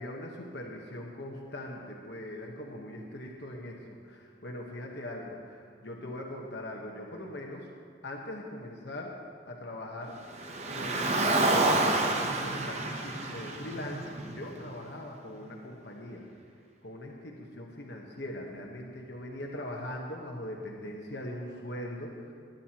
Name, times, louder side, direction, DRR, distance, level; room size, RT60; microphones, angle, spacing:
voice 1, 0.0-7.7 8.0-9.2 9.5-10.2 10.7-16.3 16.8-22.3, left 1 dB, 70° left, -1 dB, 1.2 m, -41 dB
Car, 10.3-14.7, right 2 dB, 40° right, 0.9 m, -28 dB
19.0 x 10.5 x 3.0 m, 2.1 s
head